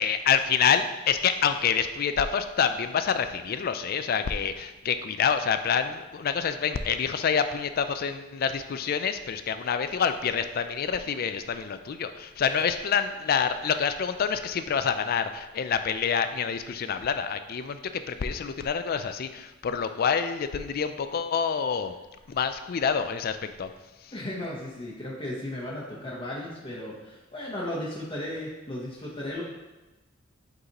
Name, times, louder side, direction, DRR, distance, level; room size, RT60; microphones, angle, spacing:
voice 1, 0.0-21.9 22.3-23.7 24.0-24.1, left 7 dB, 50° left, 9 dB, 0.3 m, -27 dB
voice 2, 24.1-29.4, left 1 dB, 25° left, -6 dB, 0.9 m, -35 dB
7.9 x 4.0 x 2.9 m, 1.1 s
head